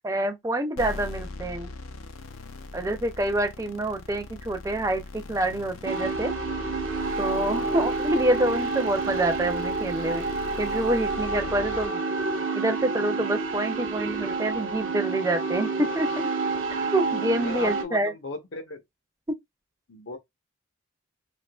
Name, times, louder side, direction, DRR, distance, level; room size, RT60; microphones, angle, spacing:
voice 1, 0.0-1.7 2.7-6.3 7.2-10.2 10.6-12.0 12.5-16.3 16.9-18.1, right 1 dB, 15° right, 0.4 m, -27 dB
sound 1, 0.8-11.9, left 2 dB, 85° left, 0.6 m, -40 dB
sound 2, 5.9-17.8, right 3 dB, 65° right, 0.7 m, -29 dB
voice 2, 7.5-7.8 17.4-18.8 19.9-20.2, left 3 dB, 70° left, 0.9 m, -37 dB
3.6 x 2.7 x 2.3 m
head